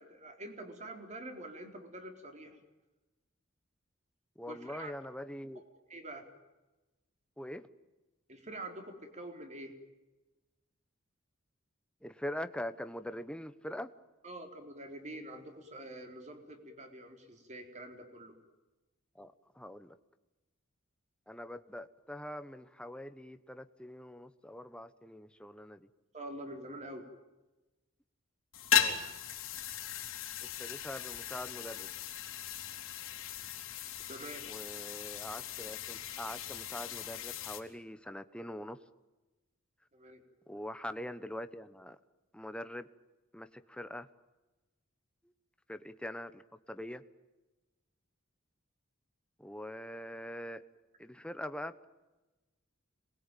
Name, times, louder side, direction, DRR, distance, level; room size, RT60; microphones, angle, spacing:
voice 1, 0.0-2.6 4.5-4.9 5.6-5.7 5.9-6.3 8.3-9.7 14.2-18.3 26.1-27.1 34.1-34.4 39.9-40.2, right 1 dB, 35° right, 4 dB, 3.9 m, -46 dB
voice 2, 4.4-5.6 7.4-7.7 12.0-13.9 19.1-20.0 21.3-25.9 28.7-29.0 30.4-31.9 34.5-38.8 40.5-42.0 42.3-42.9 43.3-44.1 45.7-46.4 46.7-47.0 49.4-50.6 51.0-51.9, left 1 dB, 5° left, 11 dB, 1.0 m, -43 dB
sound 1, 28.5-37.6, left 9 dB, 75° left, 3.5 m, -37 dB
27.0 x 21.0 x 9.2 m, 1.1 s
head